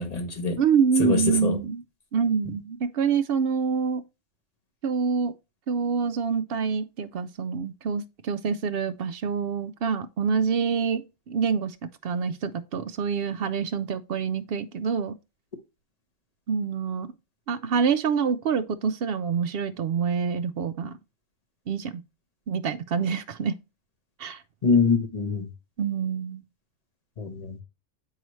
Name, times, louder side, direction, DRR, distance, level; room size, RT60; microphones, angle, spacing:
voice 1, 0.0-0.6 1.0-1.6 24.6-25.4 27.2-27.5, left 4 dB, 35° left, 1.0 m, -24 dB
voice 2, 0.6-1.8 2.1-4.0 4.8-5.3 5.7-11.7 12.0-15.1 16.5-17.1 17.5-20.9 21.7-22.0 22.5-23.6 24.2-24.4 25.8-26.4, right 6 dB, 60° right, 0.6 m, -26 dB
9.0 x 4.8 x 3.1 m
omnidirectional pair, 1.3 m